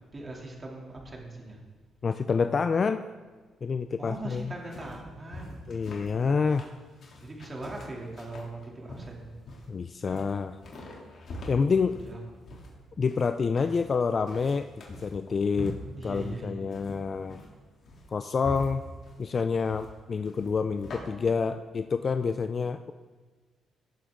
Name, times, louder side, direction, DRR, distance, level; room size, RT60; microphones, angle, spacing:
voice 1, 0.1-1.6 4.0-5.6 7.2-9.3 10.0-10.2 12.0-12.2 15.9-16.9, right 2 dB, 25° right, -1 dB, 2.8 m, -40 dB
voice 2, 2.0-3.0 3.6-4.5 5.7-6.7 9.7-10.6 11.5-12.0 13.0-17.4 18.1-18.8 19.2-22.9, left 5 dB, 40° left, 10 dB, 0.4 m, -28 dB
sound 1, 4.3-21.0, left 1 dB, 55° left, 2.9 m, -44 dB
18.5 x 7.1 x 3.8 m, 1.4 s
cardioid pair, 90°, 0 cm